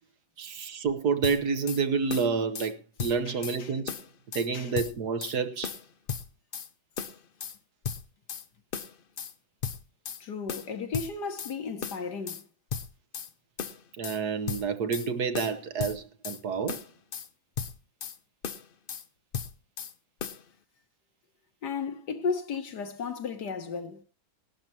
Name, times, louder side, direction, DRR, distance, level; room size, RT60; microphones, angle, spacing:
voice 1, 0.4-4.0 4.3-5.7 14.0-16.8, right 5 dB, 60° right, 1.5 m, -29 dB
sound 1, 1.2-1.8 2.1-2.7 3.0-3.6 3.9-4.5 4.8-5.4 5.6-6.7 7.0-7.6 7.8-8.5 8.7-9.3 9.6-10.2 10.5-11.5 11.8-12.4 12.7-13.3 13.6-14.2 14.5-15.1 15.3-16.4 16.7-17.3 17.6-18.2 18.4-19.0 19.3-19.9 20.2-20.4, left 7 dB, 85° left, 0.4 m, -36 dB
voice 2, 3.2-3.7 4.5-4.7 10.2-12.5 21.6-24.0, left 5 dB, 65° left, 1.8 m, -34 dB
19.5 x 12.0 x 2.9 m
omnidirectional pair, 2.0 m